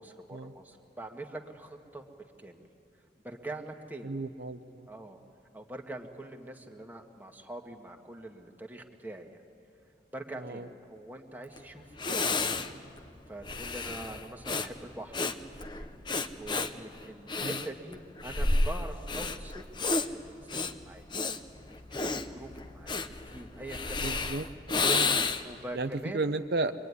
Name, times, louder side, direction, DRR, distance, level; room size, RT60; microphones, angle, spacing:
voice 1, 0.0-2.7 3.2-4.1 4.9-5.2 5.5-9.4 10.1-12.2 13.3-15.2 15.7-15.9 16.3-19.6 20.1-21.0 21.7-24.2 25.1-26.2, right 1 dB, 10° right, 2 dB, 1.6 m, -44 dB
voice 2, 4.0-4.9 10.4-10.7 17.4-17.6 24.0-25.3 25.7-26.7, right 3 dB, 60° right, 8 dB, 0.7 m, -34 dB
Breathing, 11.6-11.7 12.0-25.6, left 3 dB, 25° left, 0.8 m, -31 dB
25.5 x 23.0 x 9.7 m, 2.5 s
head